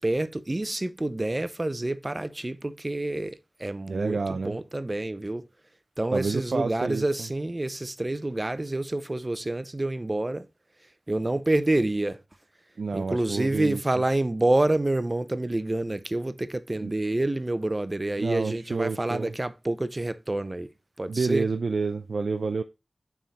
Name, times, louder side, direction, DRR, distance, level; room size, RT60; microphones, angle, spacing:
voice 1, 0.0-5.4 6.0-10.5 11.1-12.2 12.9-20.7 21.0-21.5, right 2 dB, 30° right, 0.5 m, -28 dB
voice 2, 3.9-4.6 6.1-7.3 12.8-13.8 16.8-16.9 18.2-19.3 21.1-22.6, right 4 dB, 80° right, 0.4 m, -29 dB
7.4 x 3.6 x 4.0 m
wide cardioid pair, 85°, 0 cm